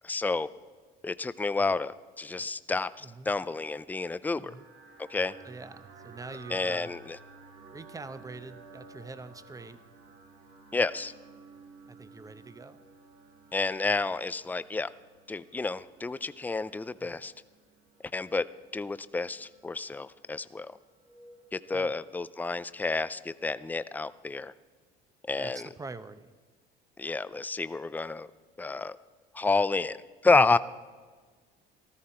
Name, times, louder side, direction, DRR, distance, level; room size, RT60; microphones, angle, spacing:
voice 1, 0.0-0.5 1.0-4.5 5.1-5.3 6.5-7.0 10.7-11.1 13.5-14.9 15.3-17.3 18.1-18.4 18.7-20.7 21.5-24.5 25.3-25.7 27.0-28.3 28.6-29.0 29.3-30.0 30.2-30.6, left 3 dB, 10° left, 15 dB, 0.4 m, -29 dB
voice 2, 3.0-3.3 4.4-4.7 5.4-6.9 7.7-9.8 11.9-12.8 17.0-17.2 21.7-21.9 25.4-26.3, right 3 dB, 15° right, 13 dB, 0.8 m, -44 dB
sound 1, 4.3-24.0, right 4 dB, 70° right, 2.7 m, -55 dB
14.0 x 13.0 x 4.4 m, 1.5 s
supercardioid pair, 85°, 21 cm